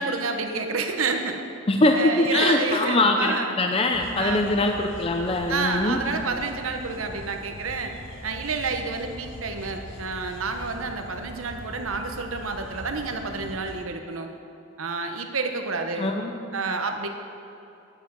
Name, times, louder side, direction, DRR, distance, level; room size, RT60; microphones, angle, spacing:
voice 1, 0.0-1.4 1.9-3.5 4.1-4.4 5.5-7.9 8.2-14.3 14.8-16.1 16.5-17.1, right 4 dB, 85° right, 5 dB, 1.0 m, -29 dB
voice 2, 1.7-6.0 16.0-16.3, left 2 dB, 30° left, 3 dB, 0.5 m, -22 dB
sound 1, 3.9-13.9, left 1 dB, 65° left, 1.0 m, -42 dB
10.0 x 8.9 x 5.3 m, 2.8 s
head